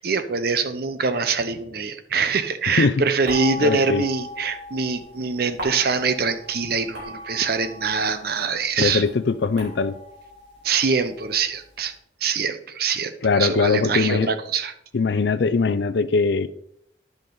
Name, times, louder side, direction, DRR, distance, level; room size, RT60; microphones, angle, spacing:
voice 1, 0.0-9.0 10.6-11.9 12.2-14.7, right 5 dB, 55° right, 0.7 m, -24 dB
sound 1, 3.2-8.5 8.8-11.7, left 1 dB, 90° right, 3.4 m, -37 dB
voice 2, 3.6-4.0 8.8-10.0 13.2-14.3 14.9-16.5, left 4 dB, 65° left, 0.4 m, -21 dB
10.5 x 6.6 x 3.9 m
head